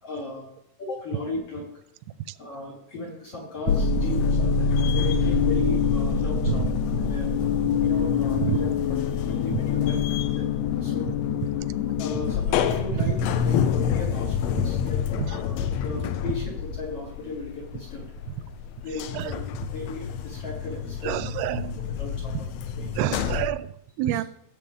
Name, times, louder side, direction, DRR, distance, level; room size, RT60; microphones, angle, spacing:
voice 1, 0.0-0.5 0.8-1.6 2.4-6.7 7.0-7.3 7.8-8.7 9.1-10.0 10.3-10.5 10.8-11.1 12.0-15.0 15.3-18.1 18.8-19.4 19.7-21.1 22.0-22.5 22.8-23.1 24.1-24.2, left 2 dB, 60° left, 0 dB, 1.7 m, -36 dB
sound 1, 3.7-18.2 18.6-23.5, left 6 dB, 80° left, 2.5 m, -25 dB
voice 2, 21.0-21.9 22.3-22.5 22.9-24.2, right 13 dB, 90° right, 15 dB, 2.6 m, -28 dB
16.0 x 7.8 x 3.4 m, 0.76 s
omnidirectional pair, 4.6 m